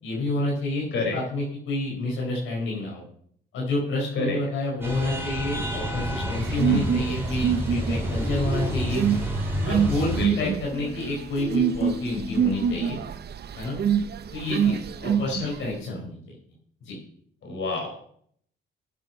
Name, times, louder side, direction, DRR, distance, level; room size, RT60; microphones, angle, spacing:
voice 1, 0.0-3.0 3.5-9.0 9.6-13.0 13.6-13.8 14.3-16.2 16.9-17.0, left 2 dB, 85° left, -3 dB, 4.6 m, -29 dB
sound 1, 4.8-10.3, right 1 dB, 10° right, 4.1 m, -29 dB
sound 2, 6.3-15.7, right 8 dB, 55° right, 0.9 m, -26 dB
voice 2, 6.6-7.0 10.1-10.5 15.2-15.5 17.4-18.0, left 2 dB, 65° left, 2 dB, 5.2 m, -29 dB
sound 3, 8.2-9.5 10.7-12.9, left 2 dB, 10° left, 1.2 m, -36 dB
15.5 x 7.7 x 5.6 m, 0.62 s
cardioid pair, 90°, 20 cm